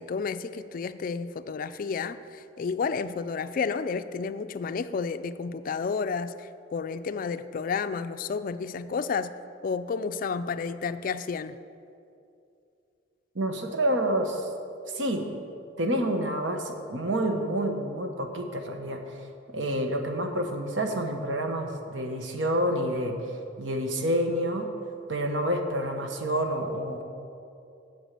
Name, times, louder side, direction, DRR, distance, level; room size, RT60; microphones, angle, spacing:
voice 1, 0.0-9.3 9.6-11.6, left 5 dB, 45° left, 13 dB, 0.3 m, -31 dB
voice 2, 13.3-14.5 14.9-15.2 15.8-19.2 19.5-23.1 23.6-24.7 25.1-27.0, right 1 dB, 75° right, 4 dB, 1.1 m, -28 dB
8.2 x 7.2 x 7.4 m, 2.6 s
head